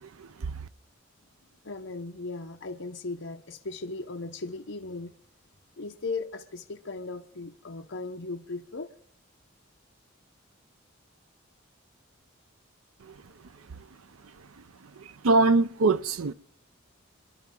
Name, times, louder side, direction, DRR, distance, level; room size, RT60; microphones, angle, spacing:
voice 1, 0.0-0.7 13.0-13.2 13.7-13.8 14.4-14.5 15.0-16.3, right 3 dB, 90° right, 0.6 m, -25 dB
voice 2, 1.6-5.1 5.8-8.9, left 3 dB, 65° left, 1.0 m, -37 dB
27.0 x 11.5 x 3.8 m
head